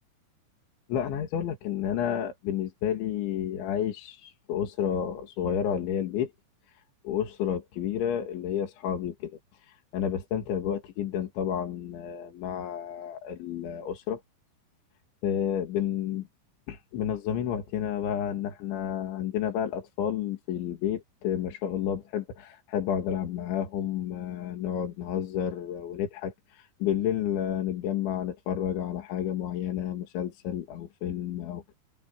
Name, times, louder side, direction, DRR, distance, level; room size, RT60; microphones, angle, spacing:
voice 1, 0.9-6.3 7.0-9.4 9.7-14.2 15.2-16.3 16.7-31.7, left 9 dB, 75° left, 4.8 m, -31 dB
omnidirectional pair, 5.3 m